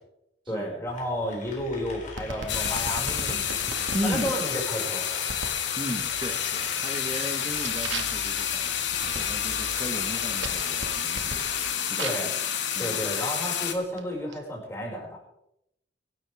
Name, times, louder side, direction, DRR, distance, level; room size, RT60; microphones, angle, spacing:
voice 1, 0.5-3.4 4.0-5.1 12.0-12.3 12.8-15.2, equal, 15° left, -2 dB, 5.7 m, -32 dB
sound 1, 0.9-11.7, left 2 dB, 40° left, 4.0 m, -44 dB
sound 2, 2.2-4.2 5.3-5.6 6.1-6.6 7.0-12.4 13.1-14.4, right 3 dB, 90° right, 2.1 m, -38 dB
sound 3, 2.5-13.7, left 8 dB, 70° left, 2.0 m, -29 dB
voice 2, 3.9-4.4 5.8-12.3 12.7-13.0, equal, 25° right, 1 dB, 1.3 m, -36 dB
24.0 x 12.0 x 3.6 m, 0.79 s
head